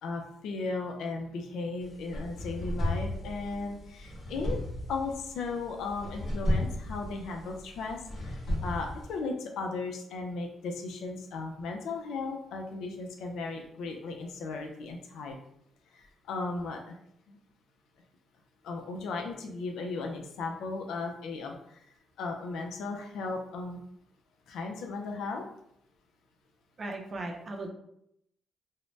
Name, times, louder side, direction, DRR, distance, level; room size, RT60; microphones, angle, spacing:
voice 1, 0.0-4.6 4.9-15.3 15.9-17.0 17.3-17.4 18.6-21.8 22.2-23.8 24.5-25.5, left 3 dB, 85° left, 2 dB, 0.4 m, -36 dB
sound 1, 1.8-9.2, left 1 dB, 45° left, 1.0 m, -34 dB
voice 2, 26.8-27.7, right 2 dB, 40° right, 1 dB, 0.5 m, -37 dB
2.6 x 2.1 x 3.1 m, 0.74 s
cardioid pair, 105°, 0 cm